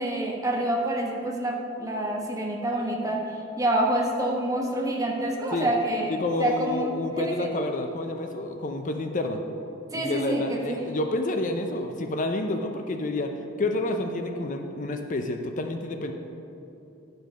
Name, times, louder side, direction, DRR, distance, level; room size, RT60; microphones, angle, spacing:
voice 1, 0.0-7.5 9.9-10.8, right 1 dB, 20° right, -1 dB, 1.2 m, -27 dB
voice 2, 6.1-9.4 9.9-13.3 13.6-16.1, left 2 dB, 40° left, 5 dB, 0.5 m, -29 dB
11.0 x 5.2 x 6.3 m, 2.8 s
head